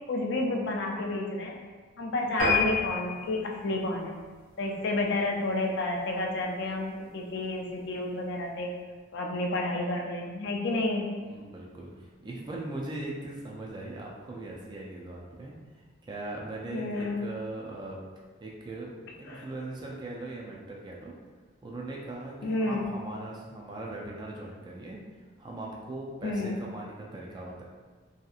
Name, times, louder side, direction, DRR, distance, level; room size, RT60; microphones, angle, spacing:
voice 1, 0.1-1.6 2.0-4.2 4.6-8.7 9.1-11.1 16.7-17.2 19.3-19.5 22.4-22.9 26.2-26.6, left 2 dB, 55° left, 1 dB, 0.4 m, -30 dB
sound 1, 2.4-5.1 5.6-5.8 6.3-6.4 6.7-6.8 7.0-7.1, left 4 dB, 75° left, 0.9 m, -30 dB
voice 2, 11.2-15.5 16.0-18.0 18.4-21.1 21.6-25.0 25.4-27.6, right 2 dB, 20° right, -3 dB, 0.3 m, -39 dB
2.8 x 2.4 x 2.3 m, 1.4 s
head